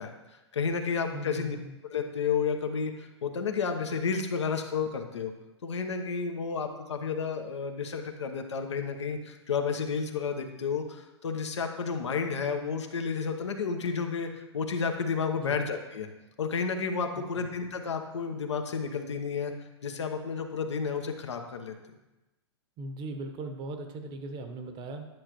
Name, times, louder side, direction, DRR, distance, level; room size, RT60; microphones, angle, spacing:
voice 1, 0.0-1.6 1.8-5.3 5.6-16.1 16.4-19.5 19.8-21.7, left 5 dB, 75° left, 5 dB, 1.0 m, -31 dB
voice 2, 1.1-1.7 15.4-15.6 17.2-17.4 22.8-25.1, right 2 dB, 30° right, 6 dB, 1.0 m, -39 dB
10.5 x 6.6 x 3.0 m, 1.0 s
hypercardioid pair, 110°, 15 cm